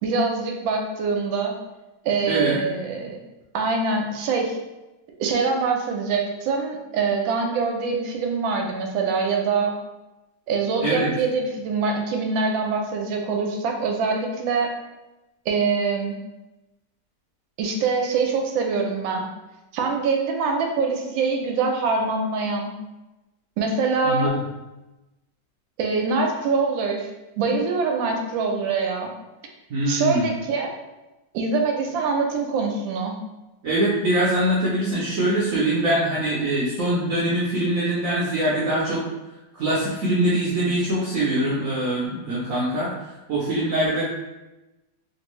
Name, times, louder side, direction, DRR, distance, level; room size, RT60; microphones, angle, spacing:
voice 1, 0.0-1.5 2.0-3.2 3.5-4.6 5.2-9.7 10.5-14.7 15.5-16.2 17.6-19.3 19.7-22.7 23.6-24.3 25.8-27.1 27.4-29.1 29.9-30.7 31.3-33.1, right 4 dB, 90° right, 2 dB, 1.3 m, -24 dB
voice 2, 24.0-24.4 29.7-30.3 33.6-39.0 39.5-42.9 43.3-44.0, right 1 dB, 60° right, -7 dB, 0.9 m, -23 dB
3.4 x 2.5 x 3.0 m, 1.0 s
omnidirectional pair, 2.0 m